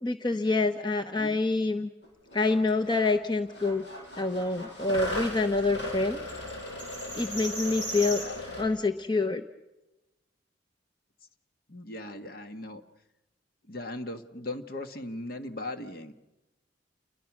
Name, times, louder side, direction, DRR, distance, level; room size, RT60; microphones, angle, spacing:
voice 1, 0.0-1.9 2.3-3.8 4.2-6.2 7.2-8.2 8.6-9.4, left 3 dB, 25° left, 7 dB, 0.9 m, -26 dB
sound 1, 2.0-2.1 2.3-3.1 3.5-8.6, equal, 75° left, 7.1 m, -37 dB
voice 2, 11.7-12.8 13.7-16.1, left 1 dB, 55° left, 7 dB, 1.7 m, -38 dB
29.5 x 22.0 x 6.2 m, 1.0 s
head